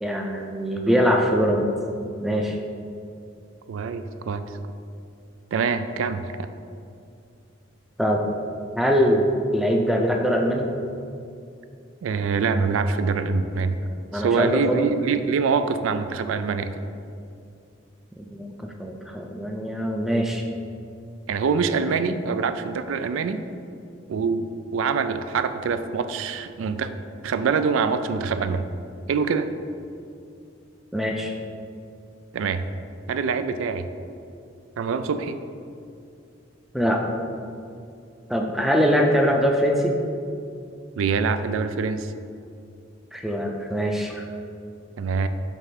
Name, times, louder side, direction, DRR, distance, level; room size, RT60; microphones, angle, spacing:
voice 1, 0.0-1.7 2.2-2.6 8.0-8.2 8.7-10.7 14.1-14.9 18.2-20.4 30.9-31.3 36.7-37.0 38.3-40.0 43.1-44.2, equal, ahead, 1 dB, 0.4 m, -22 dB
voice 2, 3.7-4.4 5.5-6.3 12.0-13.8 14.1-16.7 21.3-23.4 24.1-24.5 24.7-26.9 27.2-28.6 29.1-29.5 32.3-32.6 33.1-33.8 34.8-35.4 41.0-42.1 45.0-45.3, right 5 dB, 90° right, 10 dB, 0.3 m, -24 dB
5.4 x 3.6 x 5.8 m, 2.5 s
head